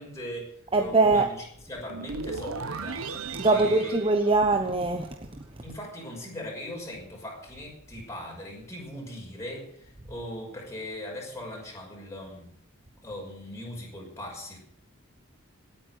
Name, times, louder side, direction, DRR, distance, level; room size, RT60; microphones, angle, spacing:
voice 1, 0.0-3.1 3.4-4.1 5.6-12.5 13.0-14.6, left 1 dB, 15° left, -2 dB, 5.9 m, -40 dB
voice 2, 0.7-1.3 3.4-5.1, right 3 dB, 25° right, 5 dB, 1.1 m, -22 dB
sound 1, 1.9-5.2, right 4 dB, 80° right, 1.3 m, -37 dB
18.0 x 9.2 x 8.0 m, 0.67 s
head